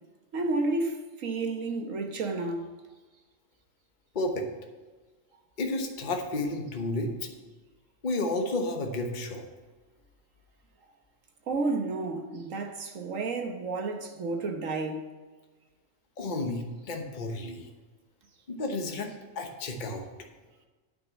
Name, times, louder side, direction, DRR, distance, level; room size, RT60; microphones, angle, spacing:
voice 1, 0.3-2.7 11.5-15.1, right 3 dB, 90° right, 1.5 m, -31 dB
voice 2, 4.1-4.5 5.6-7.1 8.0-9.4 16.2-17.7 18.5-19.1 19.3-20.0, left 2 dB, 40° left, 1.1 m, -31 dB
9.4 x 6.1 x 7.1 m
omnidirectional pair, 1.3 m